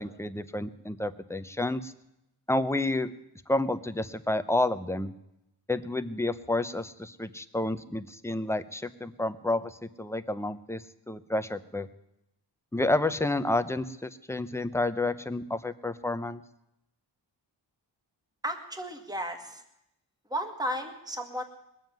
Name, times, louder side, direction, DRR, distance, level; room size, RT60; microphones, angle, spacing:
voice 1, 0.0-1.9 2.5-3.1 3.5-5.1 5.7-11.9 12.7-16.4, left 2 dB, 5° left, 11 dB, 0.7 m, -30 dB
voice 2, 18.4-19.6 20.3-21.4, equal, 10° right, 6 dB, 1.7 m, -34 dB
20.5 x 7.5 x 9.2 m, 0.84 s
wide cardioid pair, 115°, 43 cm